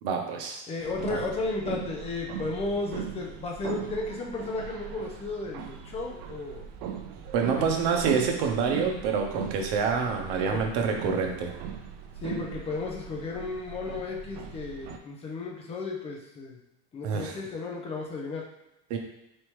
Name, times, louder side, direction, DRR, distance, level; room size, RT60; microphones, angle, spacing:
voice 1, 0.0-0.6 1.1-1.2 7.3-11.5 17.0-17.3 18.9-19.0, right 5 dB, 85° right, 3 dB, 0.9 m, -27 dB
voice 2, 0.7-6.7 7.6-7.7 10.5-10.6 12.2-16.6 16.9-18.5, left 3 dB, 20° left, -1 dB, 0.5 m, -34 dB
sound 1, 0.8-15.0, right 8 dB, 70° right, 0.5 m, -39 dB
4.3 x 3.4 x 3.1 m, 0.91 s
cardioid pair, 180°, 31 cm